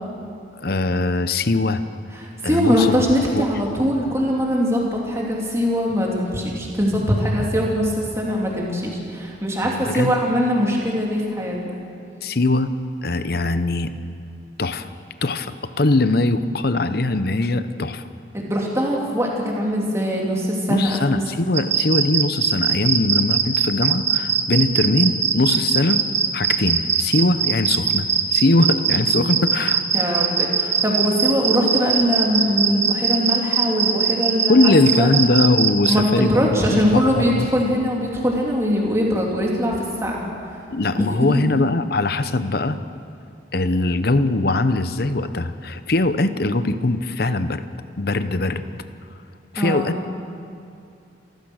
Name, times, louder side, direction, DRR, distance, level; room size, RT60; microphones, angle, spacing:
voice 1, 0.6-1.8 2.4-3.0 3.3-3.4 9.6-10.1 12.2-12.7 13.0-13.9 14.6-14.9 15.2-18.0 20.7-26.0 26.3-29.8 34.5-36.4 36.7-37.5 40.7-42.8 43.5-47.6 48.0-48.6 49.5-50.1, left 2 dB, 55° left, 11 dB, 0.8 m, -21 dB
voice 2, 2.1-11.8 18.3-21.0 29.9-35.1 35.9-40.3 41.5-41.6 49.6-49.9, equal, 15° right, -2 dB, 3.3 m, -22 dB
sound 1, 21.5-36.0, right 7 dB, 35° right, 1.4 m, -20 dB
28.0 x 15.0 x 6.5 m, 2.5 s
head